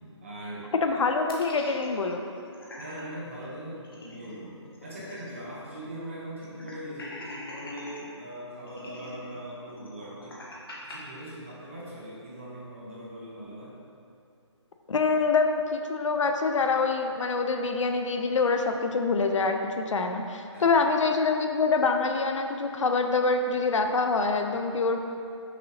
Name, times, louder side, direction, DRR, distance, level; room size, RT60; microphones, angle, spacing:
voice 1, 0.0-0.7 2.8-4.5 4.8-10.4 10.8-13.7 20.5-20.8, equal, 25° right, -7 dB, 0.7 m, -41 dB
voice 2, 0.8-2.2 14.9-25.0, left 4 dB, 80° left, 5 dB, 0.5 m, -25 dB
sound 1, 1.3-3.0 3.4-3.5 3.8-5.5 5.8-5.9 6.4-8.0 8.7-11.0, left 1 dB, 50° left, 0.8 m, -44 dB
5.9 x 2.9 x 2.7 m, 2.6 s
hypercardioid pair, 175°, 16 cm